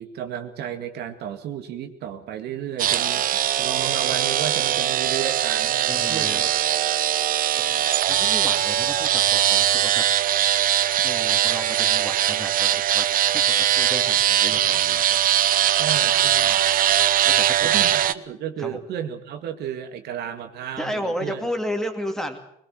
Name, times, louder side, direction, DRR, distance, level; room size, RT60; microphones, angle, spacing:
voice 1, 0.0-6.8 14.5-14.8 15.7-16.6 17.6-21.5, right 9 dB, 75° right, 7 dB, 2.1 m, -33 dB
sound 1, 2.8-18.1, right 11 dB, 55° right, 0.8 m, -21 dB
voice 2, 5.9-6.5 7.6-10.1 11.0-15.2 17.3-17.4 17.7-17.9 18.6-18.8 20.8-22.4, equal, 5° left, 5 dB, 2.7 m, -33 dB
21.5 x 21.0 x 7.6 m, 0.73 s
cardioid pair, 110°, 17 cm